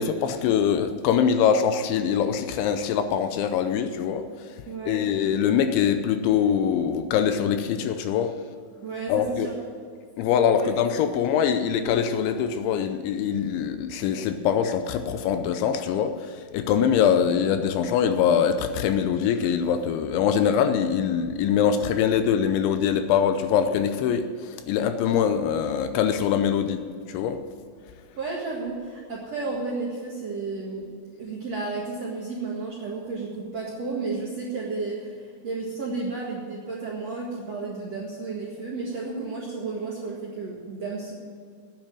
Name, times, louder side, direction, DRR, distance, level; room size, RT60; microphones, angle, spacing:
voice 1, 0.0-4.5 4.9-8.4 9.1-9.5 10.2-27.4, left 8 dB, 80° left, 9 dB, 3.0 m, -23 dB
voice 2, 4.7-5.1 8.8-9.6 10.5-10.7 28.2-30.8 31.2-35.2 35.4-41.1, right 3 dB, 55° right, -4 dB, 1.9 m, -32 dB
10.0 x 9.1 x 9.2 m, 2.2 s
omnidirectional pair, 5.6 m